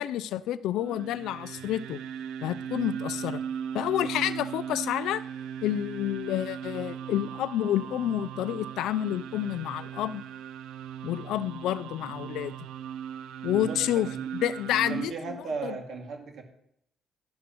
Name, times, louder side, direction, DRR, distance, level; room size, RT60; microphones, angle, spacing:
voice 1, 0.0-2.0 2.4-3.4 3.7-5.2 5.6-10.2 11.0-12.5 13.4-14.1 14.3-15.4 15.6-15.7, left 12 dB, 85° left, 16 dB, 0.4 m, -29 dB
sound 1, 0.7-15.0, right 8 dB, 90° right, 0.5 m, -38 dB
voice 2, 13.5-14.3 14.9-16.4, right 4 dB, 70° right, 2 dB, 2.2 m, -37 dB
11.0 x 11.0 x 3.0 m, 0.73 s
cardioid pair, 90°, 0 cm